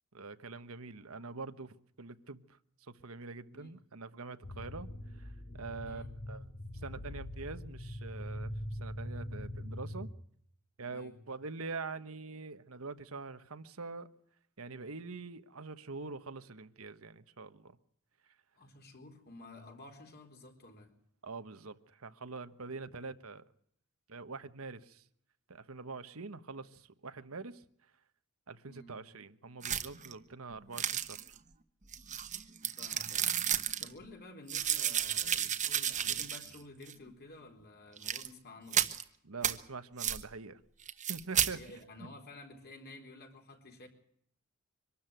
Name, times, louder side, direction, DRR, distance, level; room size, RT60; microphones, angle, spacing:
voice 1, 0.1-2.4 3.0-4.9 5.2-6.4 6.8-10.1 10.8-14.1 14.6-17.8 21.2-23.4 24.1-25.0 25.5-27.7 28.5-31.4 39.2-40.6 41.1-41.6 42.0-42.1, right 4 dB, 80° right, 1.2 m, -44 dB
sound 1, 4.4-10.1, left 1 dB, 70° left, 3.6 m, -42 dB
voice 2, 18.6-20.9 28.7-29.0 32.7-33.4 33.8-39.0 41.5-43.9, left 2 dB, 50° left, 4.3 m, -52 dB
sound 2, 29.6-30.1 30.8-31.4 31.9-33.9 34.5-36.6 36.9-37.0 38.0-38.3 38.7-39.0 39.4-39.6 40.0-40.2 40.9-41.5, right 9 dB, 35° right, 1.2 m, -32 dB
24.5 x 13.0 x 9.1 m
head